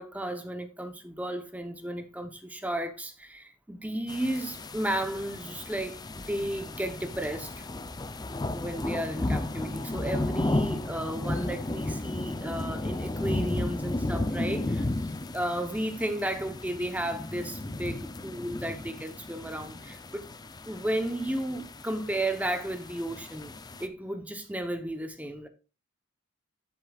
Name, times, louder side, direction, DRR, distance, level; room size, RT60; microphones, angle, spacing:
voice 1, 0.0-7.7 8.5-20.3 20.7-23.5 23.8-25.5, right 1 dB, 5° right, 0.8 m, -33 dB
sound 1, 4.1-23.9, left 2 dB, 20° left, 0.5 m, -34 dB
10.5 x 7.5 x 2.4 m
head